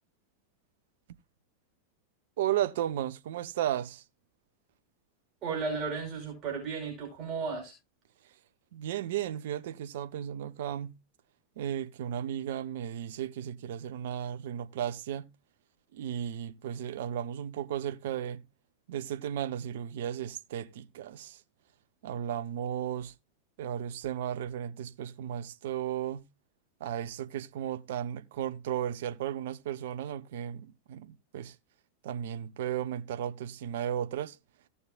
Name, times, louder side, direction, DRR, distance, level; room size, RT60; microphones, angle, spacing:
voice 1, 2.4-4.0 8.7-11.0 11.6-15.3 15.9-18.4 18.9-21.4 22.0-23.1 23.6-26.2 26.8-31.5 32.0-34.4, right 10 dB, 55° right, 1.1 m, -34 dB
voice 2, 5.4-7.7, right 5 dB, 35° right, 5.3 m, -34 dB
16.5 x 7.0 x 2.5 m
figure-of-eight pair, 90°, 0 cm